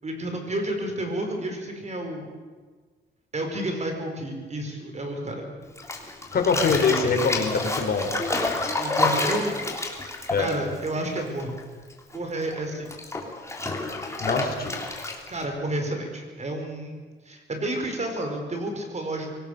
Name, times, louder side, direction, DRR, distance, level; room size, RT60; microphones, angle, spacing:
voice 1, 0.0-2.3 3.3-5.5 8.8-9.6 10.4-11.6 12.1-12.9 15.3-19.3, right 1 dB, 35° right, 4 dB, 5.2 m, -30 dB
Bathtub (filling or washing), 5.8-11.6 11.9-15.4, left 2 dB, 15° left, 3.3 m, -29 dB
voice 2, 6.3-8.1 10.3-10.5 14.2-14.7, left 4 dB, 50° left, 4 dB, 4.2 m, -23 dB
24.0 x 18.5 x 6.8 m, 1.4 s
cardioid pair, 90°, 20 cm